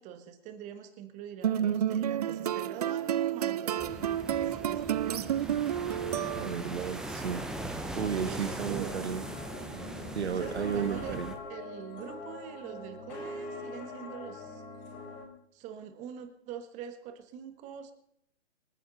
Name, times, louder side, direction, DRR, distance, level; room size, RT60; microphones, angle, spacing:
voice 1, 0.0-4.0 4.4-5.4 8.2-9.0 10.3-11.2 11.5-14.6 15.5-17.9, right 8 dB, 20° right, 9 dB, 1.7 m, -44 dB
sound 1, 1.4-6.8, right 10 dB, 35° right, 0.5 m, -30 dB
sound 2, 3.8-11.3, right 1 dB, ahead, 0.9 m, -40 dB
voice 2, 6.2-7.4 8.0-9.2 10.1-11.3, right 7 dB, 70° right, 13 dB, 1.3 m, -33 dB
sound 3, 8.9-15.2, left 2 dB, 25° left, 3.9 m, -43 dB
27.0 x 9.5 x 4.2 m, 0.73 s
hypercardioid pair, 140°, 34 cm